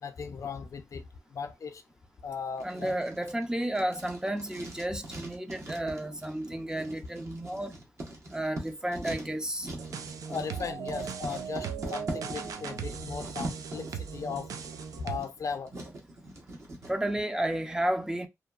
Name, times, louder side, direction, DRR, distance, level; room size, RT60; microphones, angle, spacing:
voice 1, 0.0-1.8 2.2-2.9 10.3-14.5 15.0-15.7, left 6 dB, 65° left, 0.5 m, -37 dB
voice 2, 2.6-7.7 8.3-9.7 16.9-18.3, right 1 dB, 10° right, 0.4 m, -32 dB
Writing, 2.6-16.9, right 1 dB, 55° right, 1.0 m, -42 dB
sound 1, 9.7-15.2, right 7 dB, 85° right, 0.4 m, -38 dB
2.7 x 2.2 x 2.3 m
cardioid pair, 65°, 6 cm